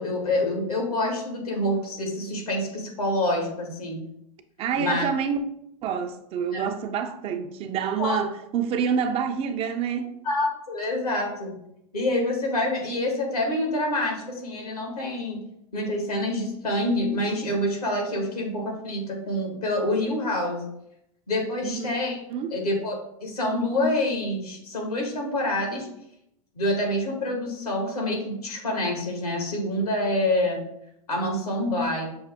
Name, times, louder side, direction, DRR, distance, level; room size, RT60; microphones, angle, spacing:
voice 1, 0.0-4.0 4.8-5.0 6.5-6.7 8.0-8.2 10.2-11.5 11.9-15.4 15.7-20.6 21.3-22.2 22.5-25.9 26.5-30.6 31.1-32.1, left 1 dB, 90° left, 1.5 m, -27 dB
voice 2, 4.6-5.4 5.8-10.1 21.6-21.9 22.3-22.6, right 7 dB, 30° right, 0.4 m, -27 dB
6.0 x 2.1 x 3.4 m
hypercardioid pair, 105°, 19 cm